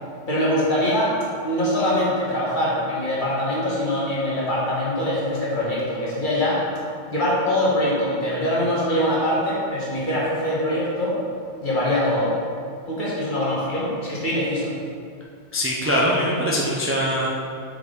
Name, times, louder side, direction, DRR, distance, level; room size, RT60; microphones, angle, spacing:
voice 1, 0.3-1.1 1.4-6.6 7.1-11.2 11.6-12.4 12.9-14.8, left 1 dB, 45° left, -7 dB, 1.7 m, -23 dB
voice 2, 15.5-17.3, equal, 20° right, -5 dB, 0.4 m, -22 dB
5.9 x 5.1 x 3.8 m, 2.2 s
omnidirectional pair, 1.2 m